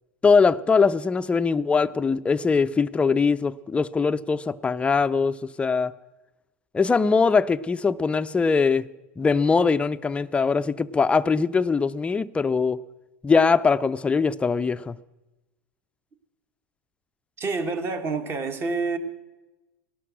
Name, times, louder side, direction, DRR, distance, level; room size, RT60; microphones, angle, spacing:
voice 1, 0.2-5.9 6.7-8.9 9.2-12.8 13.2-15.0, left 5 dB, 15° left, 0.5 m, -22 dB
voice 2, 17.4-19.0, right 4 dB, 30° right, 1.7 m, -27 dB
18.0 x 12.0 x 6.3 m
hypercardioid pair, 105°, 8 cm